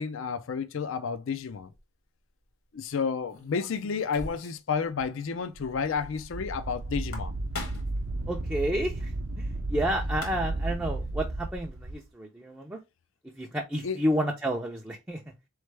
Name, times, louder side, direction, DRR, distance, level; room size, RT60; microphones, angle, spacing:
voice 1, 0.0-1.7 2.7-7.3 13.8-14.0, left 5 dB, 60° left, 0.4 m, -31 dB
sound 1, 1.5-1.8 3.3-4.7 5.0-5.1 5.4-5.5 6.9-8.0 9.8-9.9 10.1-10.7, left 2 dB, 75° left, 1.4 m, -41 dB
Wind, 5.5-12.0, right 2 dB, 65° right, 0.6 m, -33 dB
voice 2, 8.3-9.1 9.4-12.8 13.2-15.2, right 1 dB, 10° right, 0.5 m, -30 dB
4.1 x 3.2 x 3.3 m
head